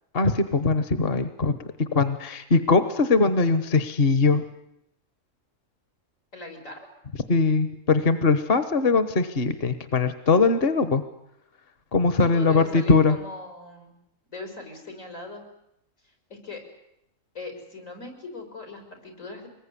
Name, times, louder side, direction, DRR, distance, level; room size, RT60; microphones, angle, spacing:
voice 1, 0.1-4.4 7.3-11.0 11.9-13.2, left 4 dB, 50° left, 11 dB, 1.3 m, -21 dB
voice 2, 6.3-6.8 12.2-14.0 14.3-15.4 16.0-16.6 17.3-19.5, left 3 dB, 85° left, 4 dB, 5.8 m, -40 dB
24.5 x 21.0 x 9.9 m, 0.80 s
omnidirectional pair, 1.3 m